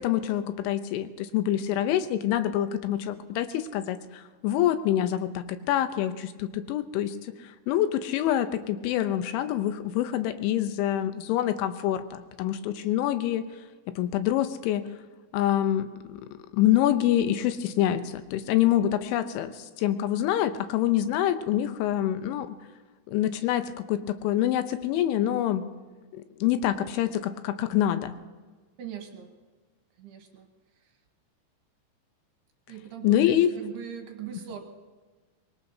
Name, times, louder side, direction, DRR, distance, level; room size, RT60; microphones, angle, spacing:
voice 1, 0.0-13.5 13.9-14.9 15.3-16.2 16.5-22.6 23.1-25.7 26.1-28.2 33.0-33.5 34.3-34.4, left 11 dB, 80° left, 10 dB, 3.1 m, -26 dB
voice 2, 28.8-29.3 30.0-30.5 32.7-34.6, right 9 dB, 70° right, 3 dB, 2.8 m, -40 dB
24.5 x 21.0 x 2.7 m, 1.3 s
omnidirectional pair, 5.5 m